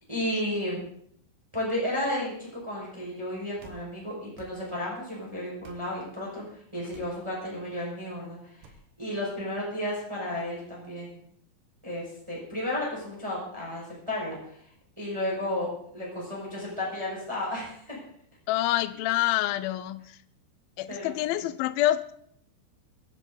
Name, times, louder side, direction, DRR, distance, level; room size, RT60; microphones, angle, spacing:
voice 1, 0.1-0.8 1.5-8.7 9.0-11.2 11.8-14.6 15.0-18.0 20.9-21.4, left 1 dB, 5° right, -4 dB, 4.9 m, -33 dB
sound 1, 3.6-3.8 4.3-4.6 5.6-5.9 6.9-7.2 8.6-8.8, right 4 dB, 70° right, 3.7 m, -50 dB
voice 2, 18.5-20.2 20.8-22.1, left 14 dB, 80° left, 13 dB, 2.1 m, -27 dB
23.0 x 11.0 x 4.0 m, 0.66 s
omnidirectional pair, 5.2 m